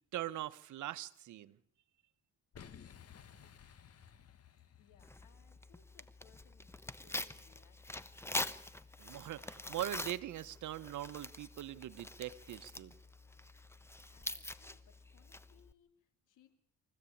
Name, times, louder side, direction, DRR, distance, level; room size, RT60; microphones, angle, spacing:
voice 1, 0.1-1.6 9.0-12.9, right 13 dB, 75° right, 14 dB, 1.1 m, -42 dB
Boom, 2.5-5.5, left 8 dB, 55° left, 1.8 m, -56 dB
voice 2, 4.8-8.3 12.8-13.7 14.1-16.6, left 8 dB, 85° left, 8 dB, 3.0 m, -69 dB
Tearing, 5.0-15.7, left 1 dB, 10° left, 1.1 m, -45 dB
24.0 x 15.5 x 8.7 m, 0.69 s
cardioid pair, 90°, 30 cm